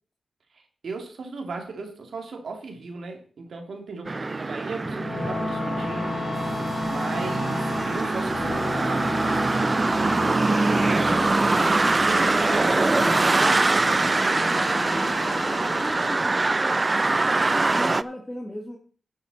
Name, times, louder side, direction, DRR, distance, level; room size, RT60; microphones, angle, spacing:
voice 1, 0.5-6.2 6.9-10.9 11.4-11.7 12.1-13.7 14.0-14.6, right 4 dB, 80° right, 4 dB, 2.9 m, -37 dB
sound 1, 4.1-18.0, right 3 dB, 35° right, 0.5 m, -23 dB
sound 2, 4.8-17.1, left 3 dB, 55° left, 2.7 m, -33 dB
sound 3, 6.3-12.1, right 2 dB, 60° right, 4.7 m, -47 dB
voice 2, 15.3-18.8, left 1 dB, 20° left, 1 dB, 2.4 m, -37 dB
12.0 x 8.6 x 4.3 m, 0.41 s
cardioid pair, 60°, 0 cm